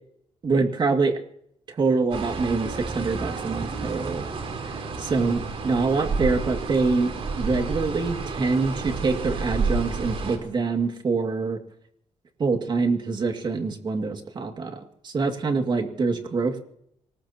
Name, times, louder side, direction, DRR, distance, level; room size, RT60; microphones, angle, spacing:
voice 1, 0.4-1.2 1.7-4.3 4.6-11.6 12.4-16.6, right 4 dB, 40° right, 5 dB, 2.3 m, -25 dB
sound 1, 2.1-10.4, right 4 dB, 55° right, 3.9 m, -30 dB
26.0 x 19.0 x 2.9 m, 0.70 s
cardioid pair, 130°, 11 cm